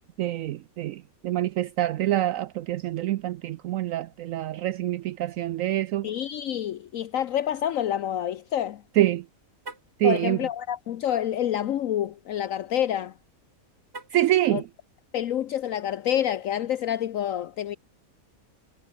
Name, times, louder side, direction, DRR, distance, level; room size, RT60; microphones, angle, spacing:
voice 1, 0.2-6.1 9.0-9.2 10.0-10.4 14.1-14.7, right 14 dB, 70° right, 0.9 m, -26 dB
voice 2, 6.0-8.8 10.0-13.1 14.5-14.6 15.1-17.8, left 10 dB, 65° left, 1.1 m, -28 dB
Car, 9.6-10.0 13.9-14.4, right 3 dB, 45° right, 2.9 m, -43 dB
omnidirectional pair, 1.5 m